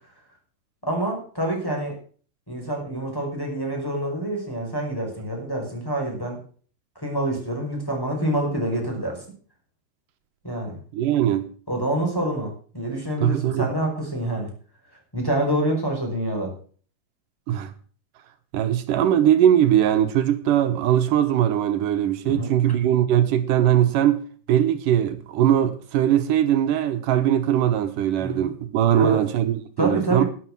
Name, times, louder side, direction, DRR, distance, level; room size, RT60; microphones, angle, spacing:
voice 1, 0.8-1.9 2.5-6.4 7.0-9.2 10.4-10.8 11.7-14.5 15.1-16.5 22.3-22.5 28.2-28.5 28.9-29.2 29.8-30.2, right 1 dB, 5° left, 5.4 m, -27 dB
voice 2, 10.9-11.5 13.2-13.7 17.5-17.7 18.5-30.2, right 11 dB, 85° right, 2.7 m, -20 dB
12.0 x 10.5 x 6.1 m
omnidirectional pair, 3.7 m